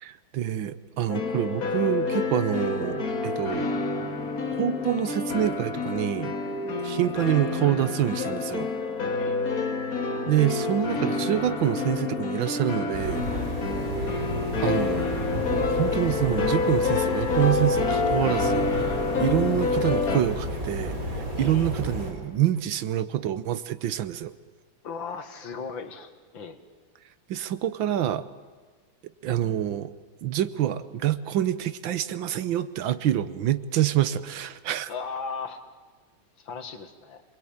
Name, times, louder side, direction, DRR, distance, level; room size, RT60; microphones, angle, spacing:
voice 1, 0.0-3.7 4.6-6.3 6.8-8.7 10.3-13.4 14.6-24.3 27.3-28.2 29.2-29.9 30.2-34.9, right 11 dB, 80° right, 14 dB, 1.7 m, -27 dB
sound 1, 1.1-20.2, left 4 dB, 50° left, 2.3 m, -28 dB
sound 2, 12.9-22.1, equal, 45° right, 5.0 m, -32 dB
voice 2, 21.3-21.7 24.8-26.6 34.9-35.6 36.4-37.2, left 5 dB, 80° left, 7 dB, 2.6 m, -37 dB
27.0 x 21.5 x 9.0 m, 1.4 s
omnidirectional pair, 2.1 m